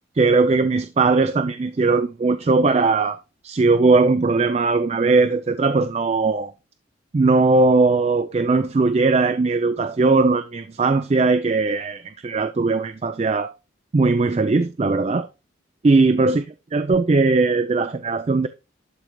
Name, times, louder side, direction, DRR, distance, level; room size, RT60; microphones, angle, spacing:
voice 1, 0.2-3.2 3.4-6.5 7.1-13.5 13.9-15.3 15.8-16.4 16.7-18.5, right 3 dB, 35° right, 0.4 m, -19 dB
12.0 x 4.5 x 2.2 m
head